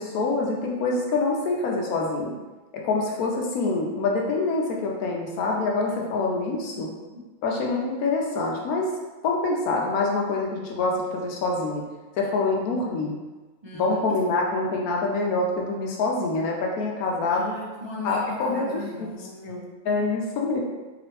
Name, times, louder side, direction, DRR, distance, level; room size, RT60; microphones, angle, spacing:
voice 1, 0.0-2.3 2.7-6.9 7.4-8.9 9.2-11.8 12.2-13.1 13.7-17.5 18.0-18.8 19.4-20.6, left 3 dB, 90° left, -1 dB, 1.2 m, -25 dB
voice 2, 5.8-6.3 6.8-6.9 7.1-7.3 13.6-14.2 17.3-20.1, left 2 dB, 45° right, -8 dB, 0.3 m, -39 dB
4.0 x 3.0 x 3.1 m, 1.2 s
omnidirectional pair, 1.5 m